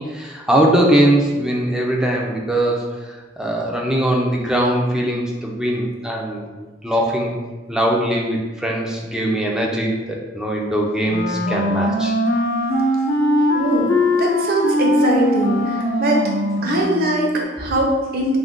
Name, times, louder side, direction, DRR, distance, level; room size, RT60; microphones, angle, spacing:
voice 1, 0.0-2.9 3.4-6.4 6.8-7.3 7.7-12.2, right 1 dB, 5° right, -1 dB, 0.3 m, -20 dB
Wind instrument woodwind instrument, 11.0-17.2, left 1 dB, 65° left, 0.5 m, -20 dB
voice 2, 13.5-16.3 16.6-18.4, equal, 55° right, -1 dB, 0.6 m, -21 dB
2.4 x 2.2 x 3.5 m, 1.3 s
head